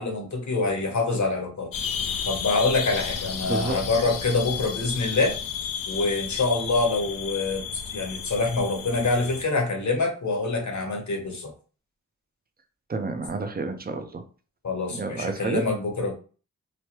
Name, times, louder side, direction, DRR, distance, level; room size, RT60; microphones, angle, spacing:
voice 1, 0.0-1.7 2.2-5.4 5.9-11.5 14.6-16.1, left 3 dB, 60° left, 2 dB, 1.0 m, -25 dB
sound 1, 1.7-9.4, left 7 dB, 85° left, 0.5 m, -33 dB
voice 2, 3.4-3.8 12.9-14.2 14.9-15.6, right 3 dB, 30° right, 7 dB, 0.6 m, -30 dB
3.1 x 2.2 x 2.9 m, 0.38 s
cardioid pair, 55°, 32 cm